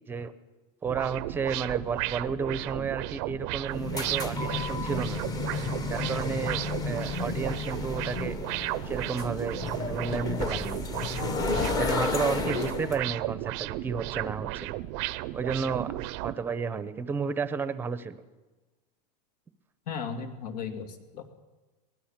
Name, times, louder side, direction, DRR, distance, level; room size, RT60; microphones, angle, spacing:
voice 1, 0.8-5.2 5.9-6.6 6.8-8.4 8.8-10.8 11.8-14.7 15.3-18.2, right 5 dB, 10° right, 13 dB, 0.8 m, -32 dB
sound 1, 0.8-16.4, right 18 dB, 40° right, 0.6 m, -34 dB
sound 2, 3.7-13.0, left 4 dB, 20° left, 1.0 m, -32 dB
voice 2, 19.9-21.2, left 6 dB, 80° left, 7 dB, 2.9 m, -36 dB
23.5 x 19.5 x 7.4 m, 1.2 s
supercardioid pair, 170°, 20 cm